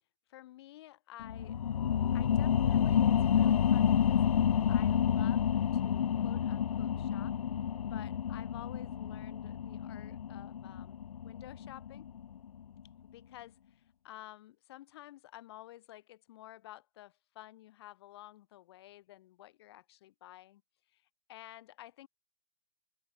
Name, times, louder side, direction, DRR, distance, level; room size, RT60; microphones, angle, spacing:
voice 1, 0.3-1.6 2.1-4.2 4.7-7.4 7.9-12.1 13.0-20.6 20.9-21.0 21.3-22.1, left 15 dB, 45° left, 6.6 m, -52 dB
sound 1, 1.2-12.4 12.8-12.9, left 9 dB, 75° left, 1.2 m, -29 dB
open air
hypercardioid pair, 155°, 19 cm